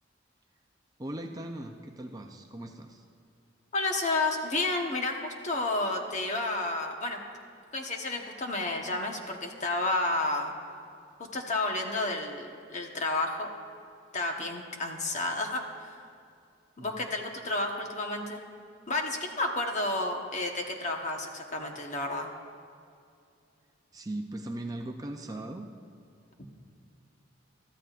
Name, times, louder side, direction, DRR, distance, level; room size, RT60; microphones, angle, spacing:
voice 1, 1.0-3.0 16.8-17.1 23.9-25.7, right 1 dB, 20° right, 3 dB, 0.6 m, -39 dB
voice 2, 3.7-7.2 7.7-10.5 11.2-13.5 14.1-16.0 16.8-18.4 18.9-22.3, left 2 dB, 40° left, 2 dB, 1.2 m, -31 dB
23.0 x 13.5 x 2.5 m, 2.4 s
head